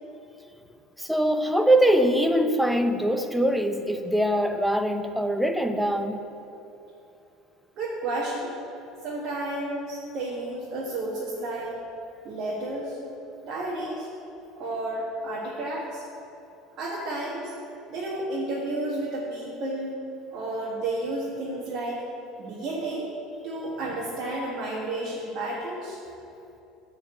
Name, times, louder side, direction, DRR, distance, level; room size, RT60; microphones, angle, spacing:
voice 1, 1.0-6.2, right 1 dB, ahead, 7 dB, 0.5 m, -23 dB
voice 2, 7.8-8.5 9.0-11.8 12.2-13.0 13.4-14.1 14.6-16.0 16.8-17.5 17.9-19.9 20.3-22.0 22.4-23.1 23.4-26.0, right 2 dB, 45° right, -5 dB, 1.6 m, -31 dB
12.0 x 4.1 x 7.5 m, 2.9 s
cardioid pair, 150°, 0 cm